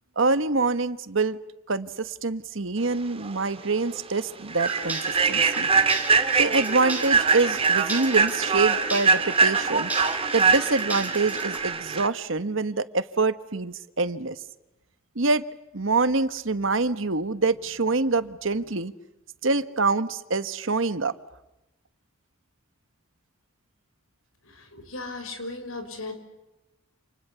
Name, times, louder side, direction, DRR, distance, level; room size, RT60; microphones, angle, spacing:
voice 1, 0.2-1.4 1.7-5.7 6.4-9.9 10.3-14.4 15.1-15.4 15.7-18.9 19.4-21.1, right 3 dB, 70° right, 13 dB, 1.3 m, -25 dB
Human voice / Train, 3.2-3.3 3.8-4.0 4.5-12.1, right 5 dB, 30° right, 2.0 m, -23 dB
sound 1, 4.6-11.6, right 2 dB, 10° right, 4.9 m, -36 dB
voice 2, 24.5-26.1, left 2 dB, 80° left, 7 dB, 5.7 m, -36 dB
29.0 x 28.5 x 7.0 m, 0.96 s
head